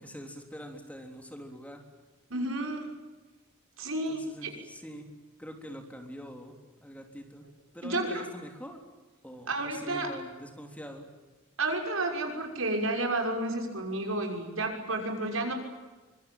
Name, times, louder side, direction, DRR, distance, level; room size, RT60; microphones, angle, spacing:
voice 1, 0.0-1.8 4.1-5.1 5.4-7.5 7.7-8.8 9.2-11.0, equal, 5° left, 3 dB, 3.6 m, -44 dB
voice 2, 2.3-2.9 3.8-4.5 7.8-8.2 9.5-10.1 11.6-15.5, right 2 dB, 80° right, 3 dB, 6.2 m, -31 dB
24.5 x 24.0 x 9.1 m, 1.2 s
head